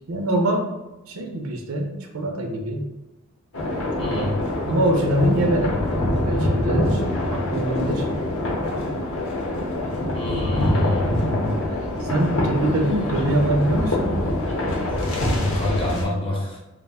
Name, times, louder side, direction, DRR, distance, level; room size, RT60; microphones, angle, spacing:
voice 1, 0.1-0.7 1.1-2.9 4.0-4.3 4.7-7.0 7.3-8.1 11.1-11.5 11.9-14.2 14.7-14.8, right 1 dB, 80° right, 3 dB, 0.5 m, -24 dB
sound 1, 3.5-16.0, left 1 dB, 65° left, 0.6 m, -24 dB
voice 2, 4.0-4.5 10.1-11.1 15.3-16.6, left 1 dB, 25° left, -2 dB, 0.5 m, -27 dB
2.3 x 2.1 x 3.4 m, 1.0 s
head